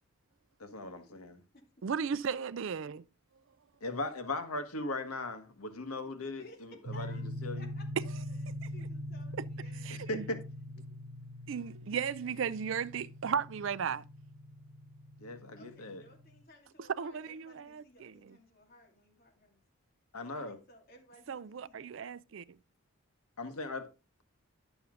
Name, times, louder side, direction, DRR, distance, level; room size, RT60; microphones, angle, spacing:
voice 1, 0.6-1.4 3.8-7.7 9.9-10.4 15.2-16.0 20.1-20.6 23.4-23.9, left 2 dB, 90° left, 1.4 m, -39 dB
voice 2, 1.8-3.0 8.6-8.7 9.8-10.3 11.5-14.1 16.8-18.4 21.3-22.4, right 6 dB, 60° right, 0.4 m, -36 dB
voice 3, 6.4-7.2 7.5-7.9 8.3-8.4 8.7-10.1 15.6-19.6 20.3-21.9, left 1 dB, 45° left, 2.5 m, -58 dB
sound 1, 6.9-16.4, equal, 80° right, 1.0 m, -43 dB
10.5 x 6.9 x 3.8 m
head